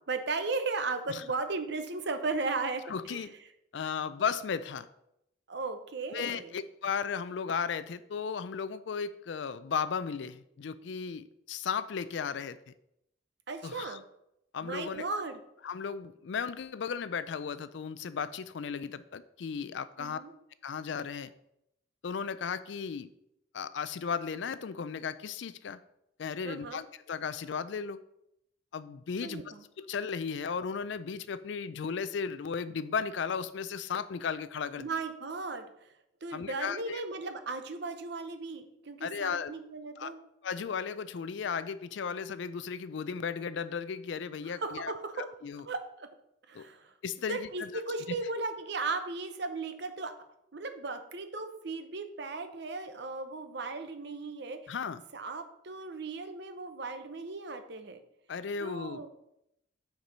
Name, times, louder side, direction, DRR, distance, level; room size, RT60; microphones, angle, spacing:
voice 1, 0.1-3.3 5.5-6.5 13.5-14.0 14.6-15.4 20.0-20.3 26.4-26.8 29.2-29.6 34.8-35.9 36.2-40.2 44.4-45.3 45.6-46.1 46.5-46.9 47.3-50.1 50.5-54.7 55.1-58.0 58.6-59.1, right 3 dB, 55° right, 8 dB, 0.7 m, -36 dB
voice 2, 2.9-3.3 3.7-4.9 6.1-12.7 13.6-14.0 14.5-15.1 15.6-20.2 20.6-21.3 22.0-23.1 23.5-25.8 26.2-28.0 28.7-29.4 29.8-34.9 36.3-37.0 39.0-39.5 40.0-40.1 40.4-45.6 46.5-46.6 47.0-47.7 54.7-55.0 58.3-59.0, left 6 dB, 60° left, 14 dB, 0.4 m, -35 dB
6.6 x 4.6 x 5.4 m, 0.80 s
head